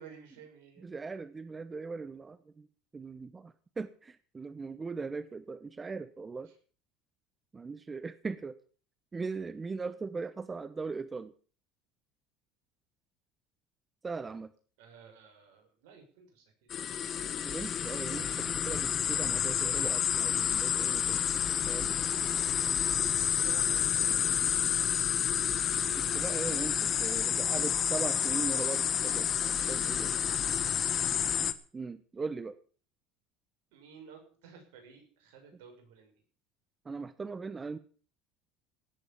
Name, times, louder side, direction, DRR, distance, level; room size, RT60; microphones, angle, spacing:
voice 1, 0.0-0.9 6.4-6.6 14.8-16.7 22.1-22.8 23.2-24.3 33.7-36.1, right 6 dB, 80° right, 3 dB, 6.7 m, -53 dB
voice 2, 0.8-2.7 2.9-6.5 7.5-8.5 9.1-11.3 14.0-14.5 17.4-21.2 21.7-22.0 25.2-25.3 26.0-29.3 29.7-30.1 31.7-32.6 36.8-37.8, right 4 dB, 25° right, 13 dB, 1.1 m, -39 dB
sound 1, 16.7-31.5, left 9 dB, 45° left, 1.4 m, -29 dB
17.5 x 8.4 x 7.3 m, 0.42 s
supercardioid pair, 90°, 0 cm